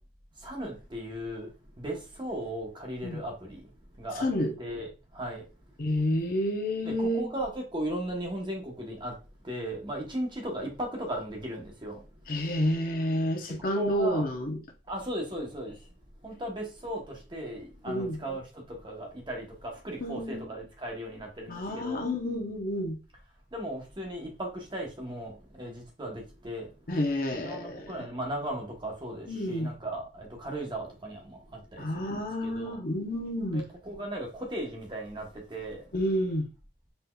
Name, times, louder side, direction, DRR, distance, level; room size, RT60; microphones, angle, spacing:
voice 1, 0.4-1.5 1.8-3.6 4.0-4.3 4.6-5.4 6.8-9.1 9.4-12.0 13.7-14.3 14.9-15.7 16.2-22.0 23.5-26.7 27.3-32.8 33.5-35.8, right 1 dB, 25° right, 1.0 m, -37 dB
voice 2, 4.2-4.5 5.8-7.3 12.3-14.6 17.9-18.2 20.0-20.5 21.5-23.0 26.9-28.1 29.3-29.7 31.8-33.6 35.9-36.5, left 1 dB, 55° left, 0.7 m, -29 dB
4.1 x 3.5 x 2.3 m
head